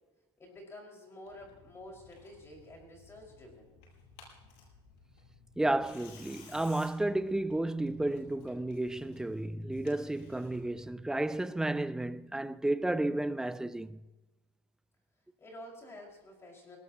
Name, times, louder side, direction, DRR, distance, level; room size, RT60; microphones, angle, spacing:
voice 1, 0.4-3.7 15.4-16.8, left 1 dB, 20° left, 5.6 m, -50 dB
Tearing, 1.3-10.9, left 4 dB, 75° left, 7.1 m, -57 dB
voice 2, 5.6-14.0, right 1 dB, 5° right, 0.4 m, -32 dB
21.5 x 19.0 x 3.0 m
supercardioid pair, 145°, 14 cm